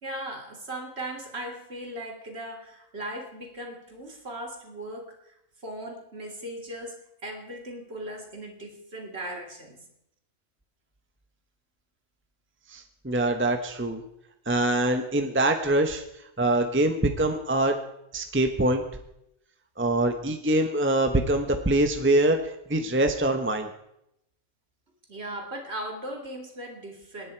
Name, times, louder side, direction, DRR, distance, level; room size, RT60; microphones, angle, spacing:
voice 1, 0.0-5.4 5.6-9.8 25.1-27.3, right 1 dB, 50° right, 2 dB, 2.8 m, -38 dB
voice 2, 12.7-14.0 14.5-16.0 16.4-17.8 18.1-18.8 19.8-23.7, right 1 dB, 10° right, 5 dB, 1.0 m, -24 dB
27.0 x 10.0 x 4.6 m, 0.81 s
omnidirectional pair, 1.4 m